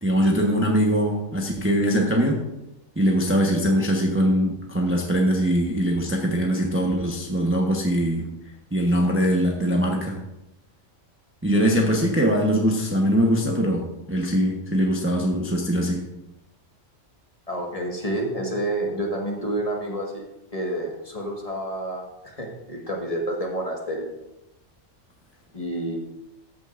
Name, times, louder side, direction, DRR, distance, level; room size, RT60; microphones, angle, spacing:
voice 1, 0.0-2.4 3.0-8.3 8.7-10.2 11.4-16.0, equal, 10° right, -1 dB, 1.0 m, -22 dB
voice 2, 17.5-20.3 20.5-24.0 25.5-26.0, right 1 dB, 25° left, -1 dB, 1.7 m, -29 dB
14.0 x 9.0 x 2.6 m, 0.91 s
omnidirectional pair, 1.4 m